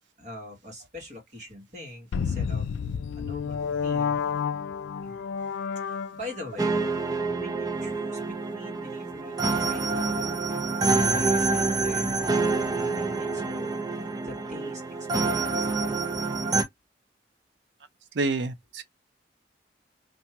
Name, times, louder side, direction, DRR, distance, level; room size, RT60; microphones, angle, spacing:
voice 1, 0.2-2.7 3.2-4.2 5.0-6.9 7.3-10.4 11.0-13.8 14.2-16.4, left 1 dB, 40° right, 1.3 m, -44 dB
sound 1, 2.1-6.5, left 6 dB, 90° left, 0.3 m, -30 dB
sound 2, 6.6-16.6, right 3 dB, 20° right, 0.4 m, -27 dB
voice 2, 18.2-18.8, right 3 dB, 80° right, 0.5 m, -28 dB
2.7 x 2.2 x 2.8 m
head